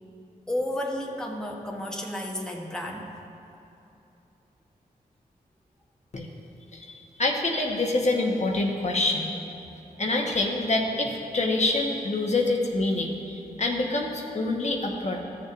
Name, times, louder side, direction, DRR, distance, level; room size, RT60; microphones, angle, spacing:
voice 1, 0.5-3.1, left 1 dB, 5° left, -1 dB, 1.0 m, -32 dB
voice 2, 6.7-9.3 10.0-15.2, left 2 dB, 45° left, 0 dB, 1.1 m, -26 dB
13.5 x 6.7 x 2.6 m, 2.9 s
cardioid pair, 50°, 16 cm